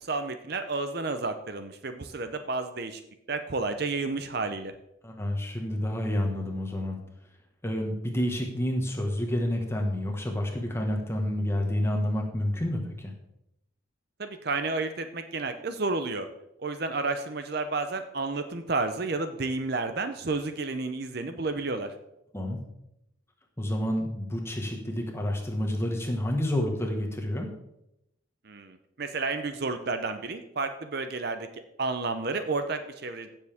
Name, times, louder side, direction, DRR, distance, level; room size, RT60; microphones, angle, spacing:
voice 1, 0.1-3.0 3.3-4.7 14.2-16.3 16.6-21.9 28.5-31.5 31.8-33.3, right 3 dB, 50° right, 8 dB, 0.7 m, -31 dB
voice 2, 5.0-7.0 7.6-13.1 22.3-22.6 23.6-27.5, left 1 dB, 10° left, 1 dB, 1.5 m, -29 dB
16.0 x 7.2 x 3.6 m, 0.84 s
head